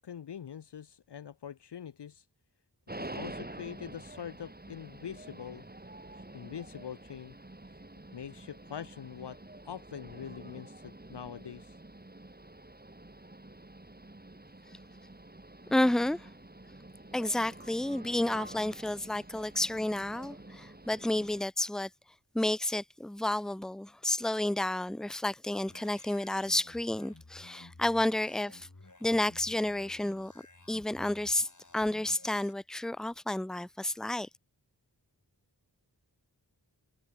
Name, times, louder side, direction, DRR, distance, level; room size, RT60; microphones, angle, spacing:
voice 1, 0.0-2.3 3.0-5.6 6.1-7.3 8.1-9.4 9.7-11.8, left 8 dB, 75° left, 0.6 m, -44 dB
sound 1, 2.9-21.4, right 1 dB, 20° right, 2.3 m, -48 dB
voice 2, 15.7-16.3 17.1-21.9 22.3-28.7 29.0-30.3 30.7-31.5 31.7-34.3, left 1 dB, ahead, 0.8 m, -31 dB
sound 2, 25.7-32.5, left 2 dB, 45° left, 4.1 m, -55 dB
wide cardioid pair, 50°, 42 cm